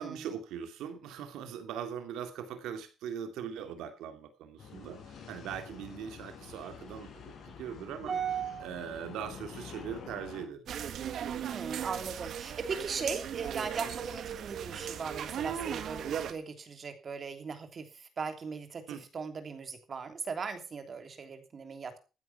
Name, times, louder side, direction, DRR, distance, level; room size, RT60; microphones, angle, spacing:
voice 1, 0.0-7.1 7.4-8.2 8.6-10.6 18.9-19.0, right 8 dB, 90° right, 8 dB, 2.6 m, -40 dB
sound 1, 4.6-10.5, left 6 dB, 70° left, 6.0 m, -48 dB
voice 2, 8.0-8.7 11.5-17.8 18.2-21.9, right 5 dB, 45° right, 8 dB, 3.1 m, -38 dB
sound 2, 10.7-16.3, right 9 dB, 70° right, 1.6 m, -37 dB
15.0 x 9.4 x 5.7 m, 0.34 s
cardioid pair, 90°, 0 cm